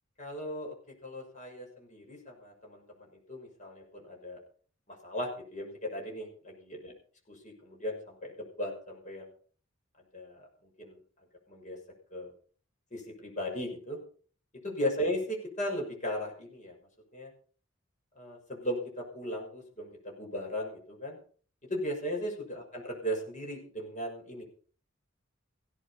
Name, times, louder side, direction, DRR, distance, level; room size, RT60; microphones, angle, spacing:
voice 1, 0.2-0.7 1.0-2.8 3.3-4.4 5.0-6.9 7.4-9.3 10.1-10.5 10.8-11.0 11.5-11.8 12.1-12.3 12.9-14.0 14.6-16.7 17.1-17.3 18.2-21.2 21.7-24.4, equal, 35° left, 1 dB, 6.0 m, -37 dB
16.5 x 11.5 x 5.8 m, 0.44 s
head